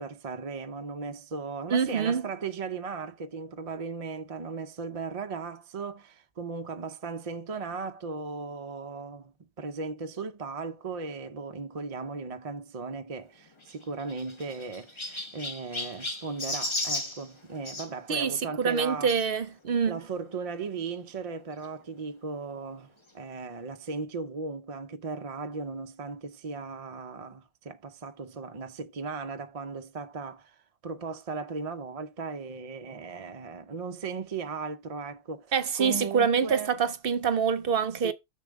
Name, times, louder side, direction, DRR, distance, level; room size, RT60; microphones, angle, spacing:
voice 1, 0.0-19.3 19.9-30.6 30.8-36.7 37.9-38.1, right 4 dB, 40° right, 0.6 m, -37 dB
voice 2, 1.7-2.2 18.1-20.0 35.5-38.1, right 6 dB, 55° right, 1.0 m, -26 dB
Chirp tweet, 13.6-17.9 19.1-19.3 20.0-20.1 20.3-20.4 21.6-21.7, left 2 dB, 25° left, 1.3 m, -35 dB
7.0 x 6.4 x 3.5 m
omnidirectional pair, 1.2 m